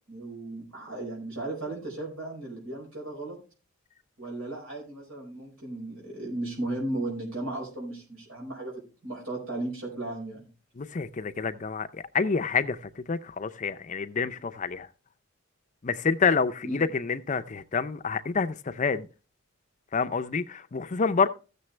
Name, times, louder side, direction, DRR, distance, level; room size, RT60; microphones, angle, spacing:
voice 1, 0.1-3.4 4.2-8.7 9.0-10.5 16.6-16.9, right 2 dB, 80° right, 4.9 m, -35 dB
voice 2, 10.8-14.9 15.8-19.1 19.9-21.3, left 5 dB, 35° left, 0.5 m, -28 dB
15.5 x 6.8 x 3.2 m
head